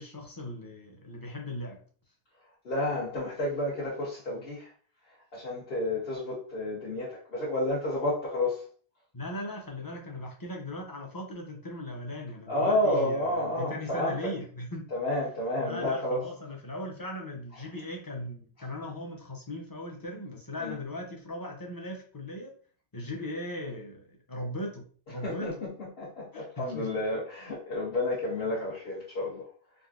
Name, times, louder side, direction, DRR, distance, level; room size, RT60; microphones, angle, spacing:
voice 1, 0.0-1.8 9.1-14.9 15.6-22.5 22.9-25.5 26.3-26.9, left 1 dB, 25° left, 0 dB, 0.5 m, -38 dB
voice 2, 2.6-4.7 5.3-8.6 12.5-14.3 14.9-16.2 20.6-20.8 25.2-29.5, left 1 dB, 65° left, -7 dB, 1.1 m, -30 dB
3.6 x 2.4 x 2.4 m, 0.44 s
omnidirectional pair, 1.1 m